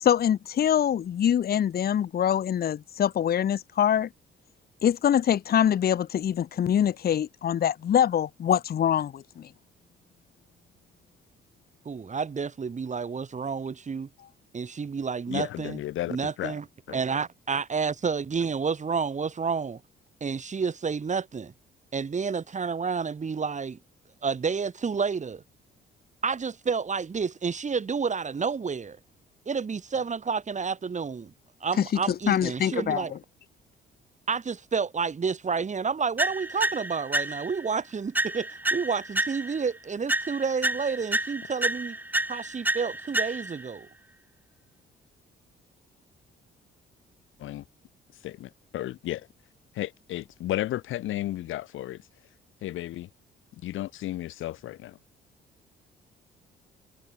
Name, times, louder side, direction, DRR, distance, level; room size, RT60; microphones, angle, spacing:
voice 1, 0.0-4.1 4.8-9.5 31.8-31.9 32.3-33.2, left 9 dB, 50° left, 0.9 m, -24 dB
voice 2, 11.8-14.1 14.5-15.8 16.1-19.8 20.2-21.5 21.9-23.8 24.2-25.4 26.2-29.0 29.5-31.3 31.6-33.1 34.3-42.0 42.3-43.9, right 5 dB, 35° right, 4.1 m, -30 dB
voice 3, 15.3-16.6 16.9-17.0 47.4-47.6 48.2-49.3 49.7-52.0 52.6-53.1 53.6-55.0, left 14 dB, 85° left, 2.7 m, -33 dB
sound 1, 36.2-37.7 38.1-39.7 40.1-43.7, right 1 dB, 10° right, 1.3 m, -30 dB
cardioid pair, 90°, 20 cm